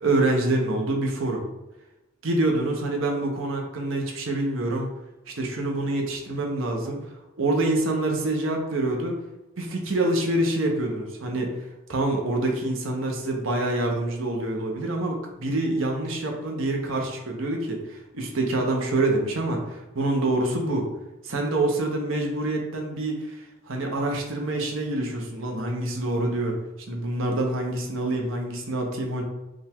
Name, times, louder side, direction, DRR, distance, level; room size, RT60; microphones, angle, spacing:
voice 1, 0.0-1.4 2.2-4.9 5.4-7.0 7.4-9.1 9.6-11.5 11.9-20.8 21.2-23.4 23.7-26.6 26.9-29.2, right 2 dB, 70° right, 1 dB, 0.9 m, -26 dB
5.2 x 2.4 x 3.5 m, 1.0 s
head